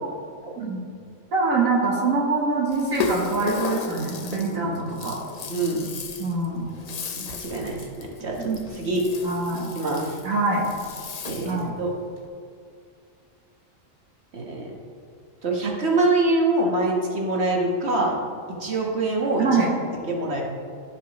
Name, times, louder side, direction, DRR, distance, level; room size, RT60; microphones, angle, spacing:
voice 1, 1.3-5.2 6.2-6.7 8.4-8.6 9.2-9.7 10.2-10.7 11.4-11.7 19.4-19.8, right 3 dB, 80° right, -2 dB, 1.6 m, -24 dB
Rattle (instrument), 2.7-11.7, left 4 dB, 55° left, 0.4 m, -34 dB
voice 2, 4.4-4.7 5.5-5.9 7.2-9.0 9.5-10.2 11.3-11.9 14.3-14.7 15.4-18.2 18.5-19.5 20.1-20.4, right 2 dB, 55° right, -1 dB, 1.6 m, -25 dB
15.0 x 5.3 x 3.1 m, 2.4 s
omnidirectional pair, 1.4 m